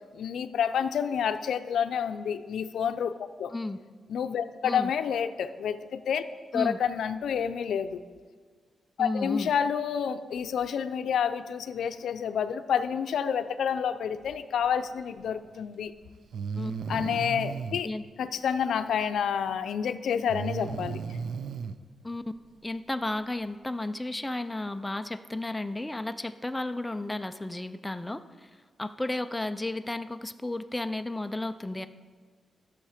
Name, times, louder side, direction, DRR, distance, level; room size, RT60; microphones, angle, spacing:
voice 1, 0.1-3.5 4.1-6.2 6.5-8.0 9.0-15.9 16.9-17.9 18.2-21.2, left 7 dB, 85° left, 10 dB, 0.5 m, -29 dB
voice 2, 9.0-9.5 16.6-16.7 17.8-18.0 22.0-22.2 22.6-28.5 28.8-31.9, left 2 dB, 10° left, 9 dB, 0.4 m, -33 dB
Breathing, 15.4-15.5 16.3-17.8 20.3-21.8, right 6 dB, 70° right, 0.4 m, -34 dB
13.5 x 6.5 x 4.9 m, 1.5 s
wide cardioid pair, 135°, 0 cm